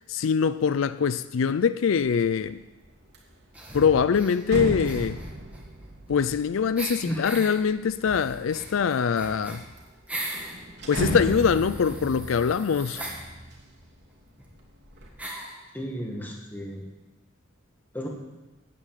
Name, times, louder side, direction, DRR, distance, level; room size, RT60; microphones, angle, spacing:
voice 1, 0.1-2.6 3.7-5.2 6.1-9.6 10.9-13.0, left 6 dB, 75° left, 0.4 m, -23 dB
Big Metallic door, 2.1-2.4 2.8-8.1 8.8-9.4 9.8-9.9 10.2-14.1 14.5-15.1, right 1 dB, 55° right, 2.9 m, -35 dB
sound 1, 3.5-4.4 4.8-6.4 6.8-7.5 8.0-10.5 10.9-13.2 14.1-14.2 14.4-14.5 15.2-15.6, right 1 dB, 5° right, 2.3 m, -39 dB
voice 2, 15.7-16.8 17.9-18.1, equal, 10° left, 2.1 m, -33 dB
9.5 x 9.2 x 9.2 m
head